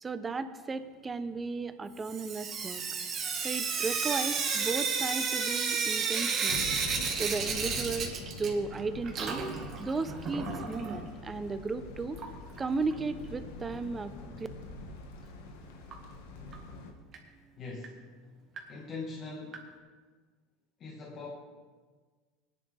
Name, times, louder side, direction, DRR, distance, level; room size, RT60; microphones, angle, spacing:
voice 1, 0.0-2.8 3.4-6.7 7.1-9.4 9.8-12.2 12.6-14.1 14.4-14.5, right 4 dB, 20° right, 11 dB, 0.8 m, -35 dB
Sink (filling or washing) / Drip, 2.0-8.8 9.0-11.0 12.2-12.3 12.6-12.7 12.9-13.0 15.9-16.0 16.5-16.6 17.1-17.2 17.8-17.9 18.6-18.7 19.5-19.6, right 5 dB, 40° right, 1.9 m, -32 dB
sound 1, 6.5-16.9, left 2 dB, 85° left, 1.6 m, -44 dB
voice 2, 17.6-18.0 18.7-19.7 20.8-21.3, left 3 dB, 40° left, -2 dB, 1.7 m, -41 dB
19.0 x 10.0 x 3.5 m, 1.4 s
supercardioid pair, 120°, 0 cm